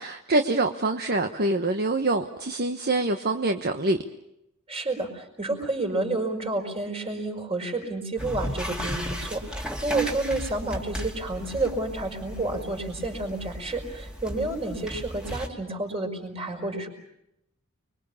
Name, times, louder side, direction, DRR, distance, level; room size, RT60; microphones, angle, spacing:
voice 1, 0.0-4.0, right 2 dB, 50° right, 6 dB, 1.3 m, -25 dB
voice 2, 4.7-16.9, right 2 dB, 30° right, 4 dB, 5.4 m, -30 dB
sound 1, 8.2-15.5, equal, 5° right, 2.8 m, -35 dB
30.0 x 23.0 x 7.2 m, 0.83 s
head